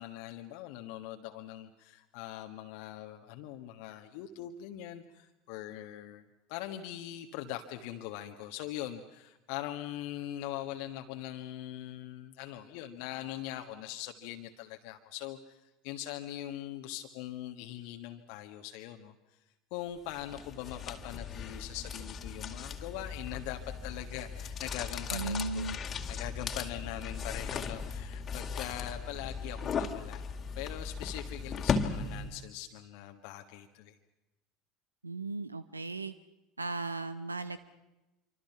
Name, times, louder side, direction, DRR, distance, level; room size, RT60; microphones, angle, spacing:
voice 1, 0.0-19.1 19.7-25.6 26.1-34.0, left 12 dB, 60° left, 5 dB, 1.5 m, -42 dB
sound 1, 20.1-32.5, left 5 dB, 35° left, 2.3 m, -37 dB
voice 2, 25.1-25.8 35.0-36.1 36.6-37.6, right 3 dB, 90° right, 14 dB, 0.8 m, -36 dB
27.0 x 25.5 x 5.9 m, 1.0 s
figure-of-eight pair, 70°, 0 cm